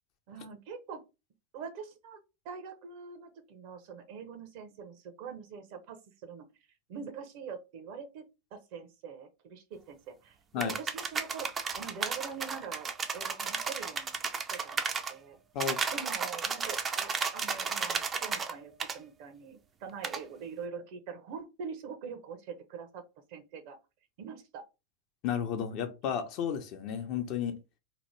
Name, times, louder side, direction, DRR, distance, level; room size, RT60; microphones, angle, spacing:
voice 1, 0.3-1.0 1.5-2.2 2.4-6.4 6.9-8.2 8.5-11.5 11.8-14.2 14.5-14.8 15.1-15.4 15.9-23.0 23.3-23.8 24.2-24.7, right 6 dB, 60° right, 0.8 m, -44 dB
sound 1, 10.6-15.1 15.6-18.5 18.8-19.0 20.0-20.2, right 5 dB, 25° right, 0.4 m, -33 dB
voice 2, 25.2-27.6, left 8 dB, 50° left, 0.7 m, -33 dB
2.9 x 2.1 x 3.1 m
hypercardioid pair, 95°, 0 cm